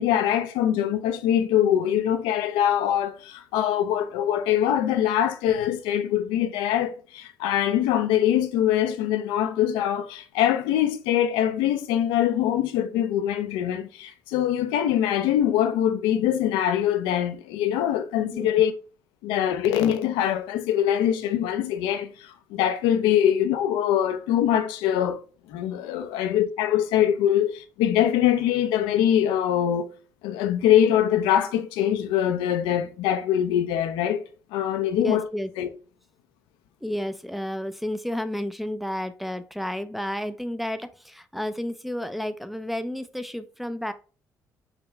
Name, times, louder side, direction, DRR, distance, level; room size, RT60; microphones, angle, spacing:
voice 1, 0.0-18.7 19.2-25.2 25.5-29.9 30.2-34.2 34.5-35.3 35.6-35.7, left 10 dB, 90° left, 0.4 m, -23 dB
voice 2, 35.0-35.5 36.8-43.9, left 1 dB, ahead, 0.4 m, -31 dB
4.9 x 2.2 x 2.9 m
supercardioid pair, 70°, 8 cm